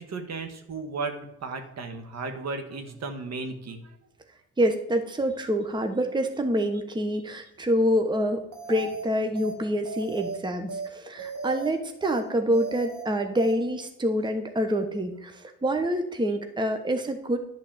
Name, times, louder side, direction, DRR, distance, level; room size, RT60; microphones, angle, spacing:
voice 1, 0.0-4.0, right 3 dB, 60° right, 6 dB, 1.6 m, -35 dB
voice 2, 4.6-17.4, equal, 15° right, 6 dB, 1.0 m, -26 dB
sound 1, 8.5-9.0 9.4-9.5 9.9-10.4 10.7-10.9 11.2-11.7 12.0-12.2 12.5-13.0 13.4-13.5, right 4 dB, 90° right, 2.1 m, -36 dB
10.5 x 4.1 x 7.4 m, 0.84 s
cardioid pair, 90°, 30 cm